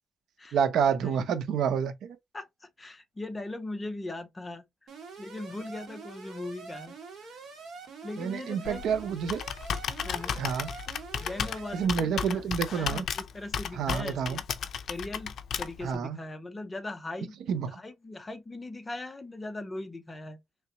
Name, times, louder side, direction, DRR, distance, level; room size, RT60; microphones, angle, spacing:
voice 1, 0.5-2.2 8.2-9.4 10.4-10.7 11.7-13.0 13.7-14.4 15.8-16.2 17.5-17.7, right 7 dB, 90° right, 0.6 m, -28 dB
voice 2, 2.3-4.6 5.2-7.3 8.0-8.9 10.0-10.4 11.2-12.4 12.7-14.4 14.9-17.4 17.7-20.4, left 2 dB, 15° left, 0.6 m, -39 dB
Alarm, 4.9-11.9, right 4 dB, 65° right, 1.5 m, -45 dB
Computer keyboard, 8.6-16.0, left 7 dB, 60° left, 0.5 m, -34 dB
3.9 x 3.3 x 2.8 m
wide cardioid pair, 165°, 0 cm